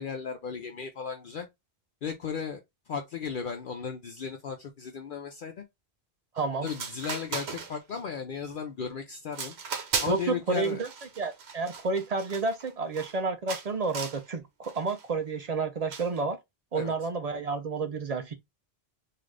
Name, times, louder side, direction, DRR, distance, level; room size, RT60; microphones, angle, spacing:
voice 1, 0.0-1.5 2.0-2.6 2.9-5.6 6.6-9.5 10.0-10.8 16.7-16.9, left 6 dB, 60° left, 0.7 m, -35 dB
voice 2, 6.3-6.7 10.1-10.9 11.2-16.4 16.7-18.3, right 4 dB, 50° right, 0.5 m, -30 dB
sound 1, 6.4-6.5 6.7-8.0 8.4-8.8 9.3-10.3 10.6-13.2 13.5-14.2 14.6-15.0 15.9-16.2, right 5 dB, 80° right, 1.1 m, -37 dB
3.7 x 2.4 x 3.2 m
omnidirectional pair, 1.1 m